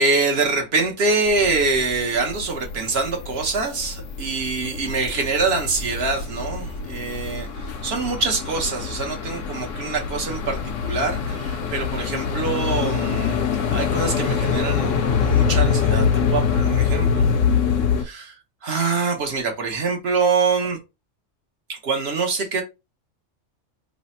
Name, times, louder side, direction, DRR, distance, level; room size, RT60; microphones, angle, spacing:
voice 1, 0.0-13.4 13.7-17.2 18.0-18.4 18.6-20.8 21.7-22.6, right 4 dB, 60° right, 1.0 m, -24 dB
sound 1, 1.3-18.0, left 6 dB, 80° left, 1.0 m, -24 dB
3.2 x 2.0 x 4.1 m
omnidirectional pair, 1.3 m